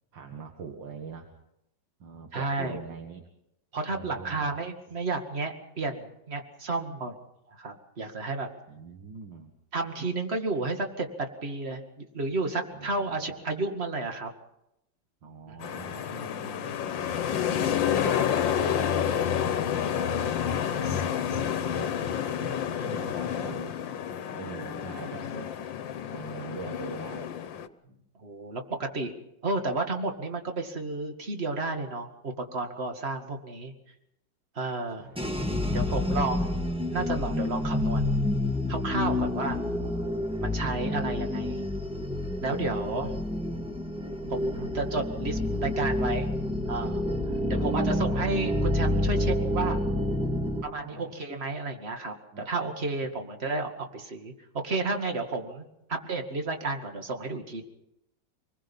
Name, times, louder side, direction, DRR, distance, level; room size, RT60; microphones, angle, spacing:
voice 1, 0.1-1.3 2.0-3.3 3.9-4.5 4.9-5.0 8.7-9.5 12.7-13.5 15.2-17.9 18.5-22.1 22.4-23.8 24.3-25.5 26.1-27.3 27.8-28.0 34.9-36.0 39.1-39.4 42.5-43.6 44.2-44.7 47.2-48.2 50.2-51.1 52.3-52.4, right 5 dB, 85° right, 3 dB, 2.5 m, -44 dB
voice 2, 2.3-2.8 3.7-7.2 7.5-8.5 9.7-14.3 15.5-15.9 22.8-23.0 28.2-29.1 29.4-33.7 34.5-35.0 35.7-36.6 36.9-38.2 38.7-39.6 40.4-41.6 42.4-43.1 44.3-46.3 46.7-47.0 47.5-49.8 50.6-54.3 54.6-57.6, right 3 dB, 35° right, 4 dB, 2.3 m, -32 dB
sound 1, 15.6-27.7, left 9 dB, 90° left, 1.7 m, -29 dB
sound 2, 35.2-50.6, left 1 dB, 5° right, 1.3 m, -28 dB
27.0 x 20.5 x 5.6 m, 0.84 s
omnidirectional pair, 2.0 m